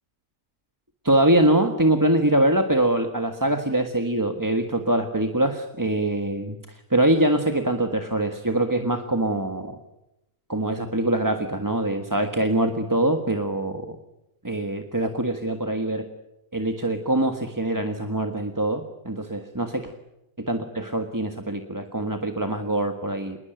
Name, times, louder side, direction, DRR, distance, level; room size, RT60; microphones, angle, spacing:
voice 1, 1.0-9.8 10.5-14.0 14.4-16.1 16.5-19.9 20.4-23.4, right 1 dB, 15° right, 5 dB, 1.5 m, -23 dB
27.5 x 21.0 x 9.1 m, 0.88 s
omnidirectional pair, 1.6 m